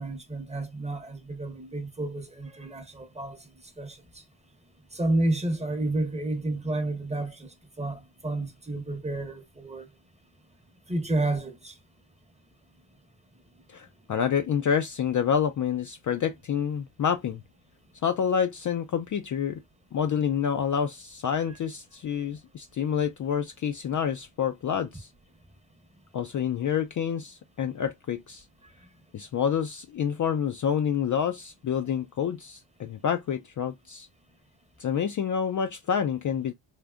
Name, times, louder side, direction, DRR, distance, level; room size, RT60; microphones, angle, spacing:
voice 1, 0.0-3.5 3.8-4.2 4.9-9.9 10.9-11.8, right 2 dB, 15° right, 0.8 m, -30 dB
voice 2, 13.7-17.4 18.0-19.6 19.9-25.1 26.1-28.4 29.1-34.1 34.8-36.5, left 8 dB, 40° left, 0.4 m, -28 dB
3.5 x 2.6 x 2.3 m
cardioid pair, 105°, 49 cm